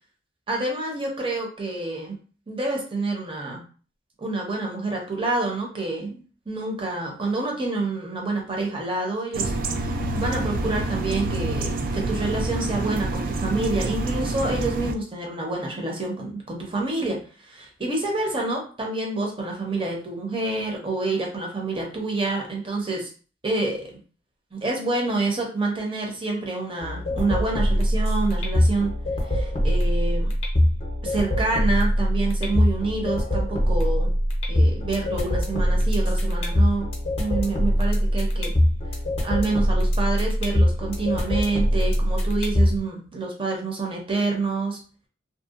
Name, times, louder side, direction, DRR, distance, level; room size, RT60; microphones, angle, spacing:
voice 1, 0.5-2.2 2.5-3.6 4.2-9.5 9.8-23.1 23.4-23.9 24.5-28.9 29.3-30.3 31.0-34.1 34.5-36.9 37.2-38.5 39.2-44.8, right 2 dB, 30° right, -1 dB, 0.7 m, -27 dB
sound 1, 9.3-14.9, right 2 dB, 50° right, 0.3 m, -27 dB
sound 2, 26.8-42.8, equal, 35° left, 0.6 m, -23 dB
2.7 x 2.1 x 2.4 m, 0.38 s
head